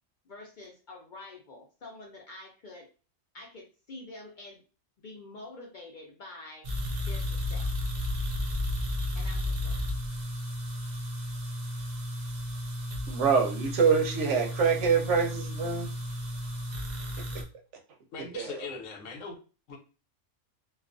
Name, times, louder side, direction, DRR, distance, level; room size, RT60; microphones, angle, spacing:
voice 1, 0.3-2.9 3.3-4.6 5.0-6.7 7.0-7.7 9.1-9.8, left 2 dB, 60° left, -1 dB, 0.5 m, -47 dB
sound 1, 6.6-17.4, left 1 dB, 55° right, 0.5 m, -33 dB
voice 2, 13.1-15.9 17.3-17.4 18.3-18.6, right 5 dB, 75° right, 2 dB, 0.9 m, -25 dB
voice 3, 18.1-19.4 19.7-19.8, left 4 dB, 85° left, 3 dB, 1.0 m, -40 dB
2.3 x 2.3 x 2.4 m, 0.35 s
omnidirectional pair, 1.3 m